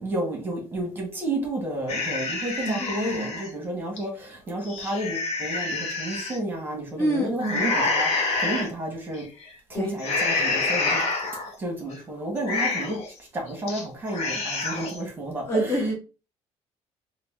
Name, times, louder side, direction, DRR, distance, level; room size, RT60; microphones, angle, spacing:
voice 1, 0.0-9.2 9.7-11.0 11.3-13.0 13.3-15.8, right 1 dB, 20° right, 1.5 m, -31 dB
sound 1, 1.9-3.5 4.0-4.1 4.5-6.4 7.4-8.7 9.1-9.5 10.0-11.5 11.9-12.0 12.4-13.1 13.5-13.8 14.1-15.0, left 3 dB, 65° left, 1.3 m, -27 dB
voice 2, 2.6-3.3 7.0-7.7 9.7-9.9 15.5-15.9, right 1 dB, 20° left, 0.9 m, -27 dB
4.0 x 2.4 x 3.7 m
cardioid pair, 160°, 12 cm